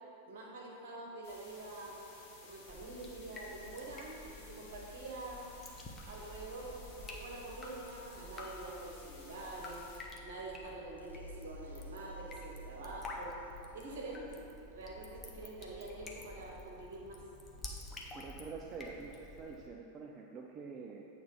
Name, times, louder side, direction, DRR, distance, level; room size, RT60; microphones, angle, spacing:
voice 1, 0.3-2.0 2.4-5.5 6.0-9.8 10.2-13.4 13.7-14.4 14.7-17.2, right 2 dB, 60° right, -2 dB, 1.2 m, -46 dB
sound 1, 1.2-10.0, left 3 dB, 40° left, 1.4 m, -57 dB
Drip, 2.7-19.7, left 2 dB, 20° left, 0.8 m, -50 dB
sound 2, 11.0-13.9, equal, 80° right, 0.6 m, -51 dB
voice 2, 18.1-21.0, right 5 dB, 30° right, 0 dB, 0.4 m, -46 dB
8.6 x 3.3 x 5.4 m, 2.8 s
figure-of-eight pair, 90°, 0 cm